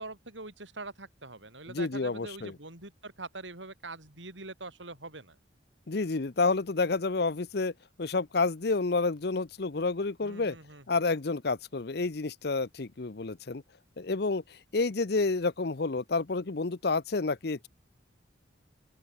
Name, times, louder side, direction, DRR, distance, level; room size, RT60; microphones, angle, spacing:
voice 1, 0.0-5.4 10.2-10.8, right 2 dB, 80° right, 7.5 m, -44 dB
voice 2, 1.7-2.5 5.9-7.7 8.0-10.6 10.9-13.6 14.0-17.7, left 3 dB, 60° left, 0.8 m, -29 dB
open air
head